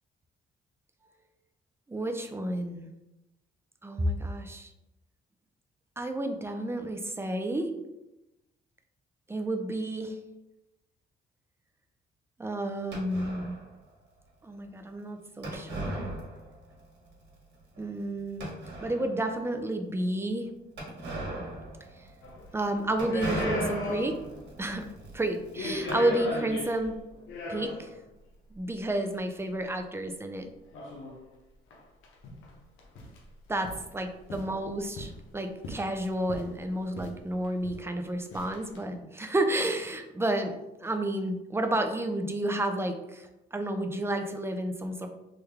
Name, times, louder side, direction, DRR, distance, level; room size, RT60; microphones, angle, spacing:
voice 1, 1.9-2.9 3.8-4.7 6.0-7.8 9.3-10.2 12.4-13.6 14.4-16.1 17.8-18.5 18.8-20.5 22.0-22.1 22.5-24.2 24.6-24.9 25.1-27.0 27.5-27.9 28.5-30.5 33.5-45.1, right 1 dB, 10° right, 5 dB, 0.4 m, -31 dB
sound 1, 12.9-13.7 15.4-16.8 17.1-17.2 17.7-17.8 18.4-19.2 20.8-26.6, right 1 dB, 60° right, 1.3 m, -38 dB
sound 2, 22.2-22.5 23.0-24.4 24.7-24.8 25.4-28.0 28.9-29.0 30.7-31.2 31.7-31.8 32.0-32.5 32.8-33.2 33.6-33.9 34.3-35.2 35.6-36.6 37.0-37.2 37.4-37.9 38.3-38.8, left 2 dB, 85° left, 0.7 m, -37 dB
3.5 x 2.2 x 3.2 m, 0.94 s
cardioid pair, 90°, 20 cm